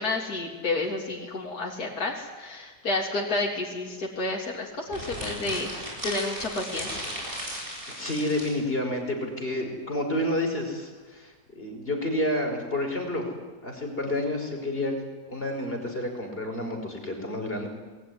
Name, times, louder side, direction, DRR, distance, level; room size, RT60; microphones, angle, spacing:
voice 1, 0.0-7.1, left 2 dB, 65° left, -2 dB, 3.9 m, -30 dB
sound 1, 4.9-8.6, equal, 30° right, 8.1 m, -36 dB
voice 2, 8.0-13.3 13.6-14.9 15.3-17.7, left 1 dB, 35° left, 3 dB, 5.7 m, -29 dB
27.5 x 21.0 x 9.9 m, 1.4 s
omnidirectional pair, 1.8 m